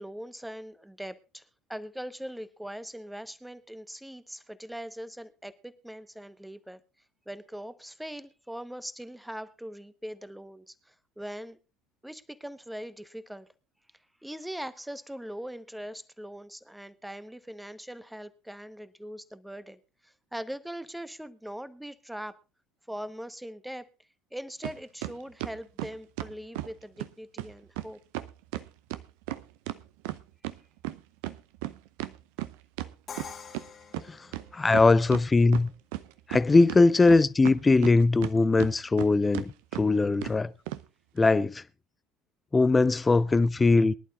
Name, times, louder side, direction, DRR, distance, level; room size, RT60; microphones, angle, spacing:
voice 1, 0.0-6.8 7.3-11.6 12.0-13.5 14.2-22.4 22.9-23.9 24.3-28.0, equal, 5° right, 1.1 m, -41 dB
sound 1, 24.6-24.8 25.0-26.7 27.0-27.1 27.4-27.5 27.8-27.9 28.1-30.6 30.8-33.6 33.9-34.0 34.3-35.2 35.5-36.4 36.7-38.3 38.6-39.1 39.3-39.5 39.7-39.8 40.2-40.4 40.7-40.8, right 16 dB, 65° right, 0.7 m, -35 dB
Crash cymbal, 33.1-35.0, left 6 dB, 35° left, 1.6 m, -45 dB
voice 2, 34.5-35.7 36.3-40.5 41.2-41.6 42.5-43.9, left 3 dB, 20° left, 0.6 m, -21 dB
23.0 x 11.5 x 2.4 m
figure-of-eight pair, 60°, 0 cm